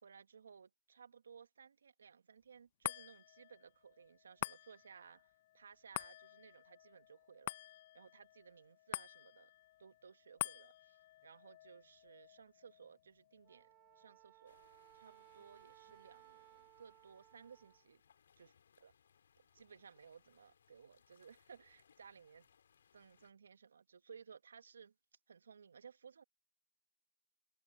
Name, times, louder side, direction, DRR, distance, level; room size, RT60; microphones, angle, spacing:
voice 1, 0.0-7.5 7.9-9.5 9.8-14.6 14.9-18.0 18.4-18.5 18.8-18.9 19.5-22.5 22.9-24.9 25.3-26.2, right 6 dB, 70° right, 1.7 m, -59 dB
sound 1, 2.8-15.4 15.9-16.0, left 15 dB, 40° left, 1.0 m, -49 dB
Wind instrument woodwind instrument, 13.4-17.9, right 20 dB, 25° right, 0.6 m, -63 dB
sound 2, 14.5-23.3, left 7 dB, 65° left, 4.0 m, -72 dB
hypercardioid pair, 140°, 0 cm